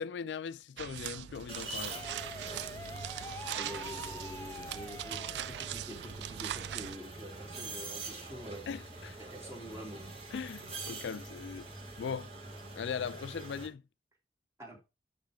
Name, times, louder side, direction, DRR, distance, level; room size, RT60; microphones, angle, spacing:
voice 1, 0.0-2.1 8.7-9.2 10.3-11.7 12.0-12.3 12.8-13.8, left 6 dB, 85° left, 0.4 m, -39 dB
sound 1, 0.8-7.0, right 11 dB, 70° right, 0.3 m, -41 dB
sound 2, 1.5-13.7, right 3 dB, 35° right, 2.8 m, -45 dB
sound 3, 1.9-6.0, left 2 dB, 15° left, 0.4 m, -46 dB
voice 2, 2.9-3.3 3.5-8.7 9.2-10.3 14.6-14.8, equal, 15° right, 2.6 m, -47 dB
10.5 x 3.6 x 4.9 m
head